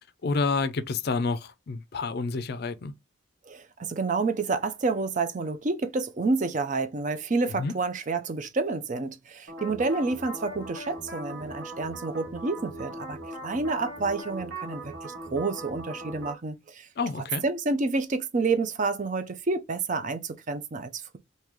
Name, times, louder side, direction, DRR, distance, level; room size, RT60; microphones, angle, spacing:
voice 1, 0.2-2.9 7.6-7.7 17.0-17.4, left 4 dB, 50° left, 0.4 m, -29 dB
voice 2, 3.5-16.9 17.4-21.2, right 3 dB, 40° right, 0.5 m, -29 dB
sound 1, 9.5-16.3, right 1 dB, 65° right, 1.4 m, -39 dB
3.6 x 2.7 x 3.0 m
head